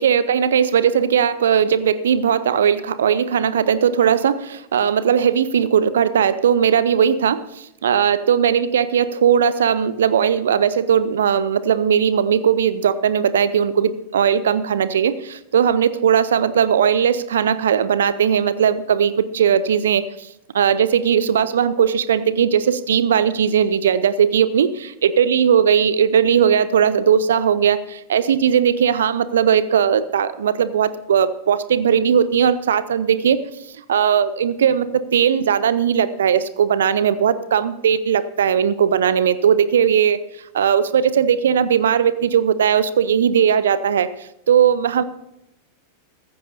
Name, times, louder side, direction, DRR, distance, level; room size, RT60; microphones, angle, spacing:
voice 1, 0.0-20.3 20.5-24.7 25.0-33.4 33.9-40.2 40.5-45.0, right 8 dB, 65° right, 15 dB, 0.6 m, -18 dB
15.0 x 14.0 x 2.7 m, 0.82 s
figure-of-eight pair, 90°, 0 cm